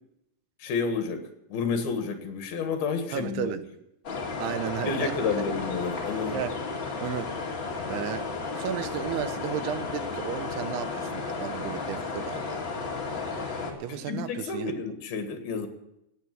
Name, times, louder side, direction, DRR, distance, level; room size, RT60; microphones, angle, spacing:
voice 1, 0.6-1.2 1.5-3.5 4.8-6.4 13.9-15.7, left 5 dB, 70° left, 6 dB, 3.4 m, -30 dB
voice 2, 3.1-3.6 4.4-5.2 6.3-6.6 7.0-7.3 7.6-8.3 8.6-12.6 13.8-14.8, right 9 dB, 80° right, 12 dB, 2.8 m, -33 dB
sound 1, 4.0-13.7, left 4 dB, 35° left, 2.2 m, -33 dB
17.5 x 8.2 x 7.4 m, 0.84 s
omnidirectional pair, 4.7 m